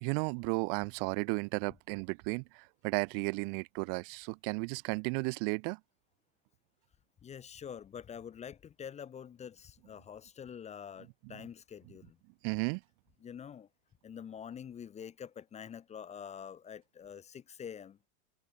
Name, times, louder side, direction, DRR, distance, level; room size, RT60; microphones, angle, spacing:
voice 1, 0.0-5.8 12.4-12.8, right 40 dB or more, 40° right, 0.4 m, -34 dB
voice 2, 7.2-12.2 13.2-13.7 14.0-18.0, left 8 dB, 15° left, 0.6 m, -46 dB
supercardioid pair, 130°, 43 cm